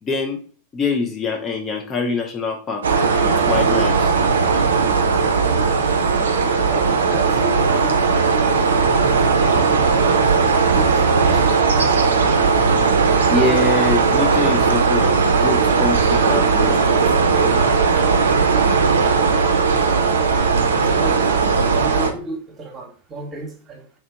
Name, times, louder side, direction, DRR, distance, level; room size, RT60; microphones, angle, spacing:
voice 1, 0.0-0.4 0.7-4.1 13.3-17.0, left 4 dB, 25° left, 0.4 m, -24 dB
sound 1, 2.8-22.1, right 5 dB, 70° right, 0.5 m, -17 dB
voice 2, 6.7-8.3 8.7-10.4 10.7-12.0 20.7-24.0, right 2 dB, 25° right, 1.0 m, -33 dB
3.0 x 2.8 x 3.4 m
figure-of-eight pair, 90°, 0 cm